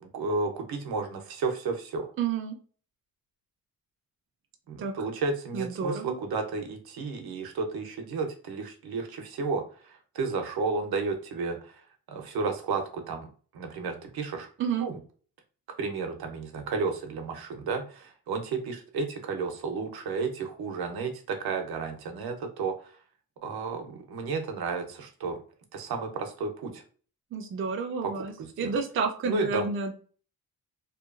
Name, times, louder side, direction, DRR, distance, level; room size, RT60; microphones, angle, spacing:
voice 1, 0.0-2.1 4.7-11.7 12.1-13.3 13.5-14.5 14.8-15.0 15.8-22.9 23.4-25.4 25.7-26.8 28.0-28.1 28.4-28.7 29.3-29.6, right 4 dB, 80° right, 5 dB, 0.7 m, -32 dB
voice 2, 2.2-2.5 4.8-4.9 5.5-6.2 14.6-14.9 27.3-29.9, right 5 dB, 35° right, 3 dB, 0.4 m, -30 dB
2.8 x 2.3 x 2.4 m, 0.41 s
wide cardioid pair, 160°, 36 cm